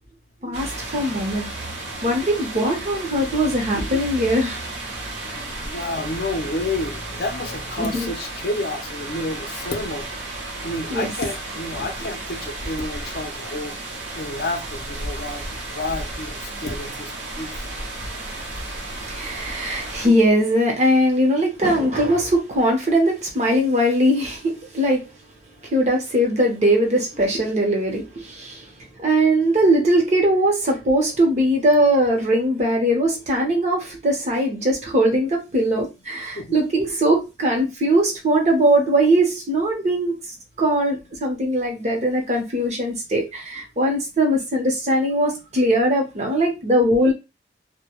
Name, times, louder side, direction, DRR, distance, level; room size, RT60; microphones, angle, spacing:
voice 1, 0.4-1.5 2.0-4.6 7.8-8.1 10.9-11.1 19.1-25.0 25.7-28.6 29.0-40.1 40.6-47.1, right 1 dB, 40° right, 0.7 m, -20 dB
sound 1, 0.5-20.1, right 2 dB, 85° right, 0.7 m, -33 dB
voice 2, 5.3-10.1 10.6-13.7 14.2-15.4 15.7-17.6 27.2-27.3 36.3-36.6, left 2 dB, 60° left, 0.5 m, -30 dB
2.1 x 2.1 x 2.8 m
head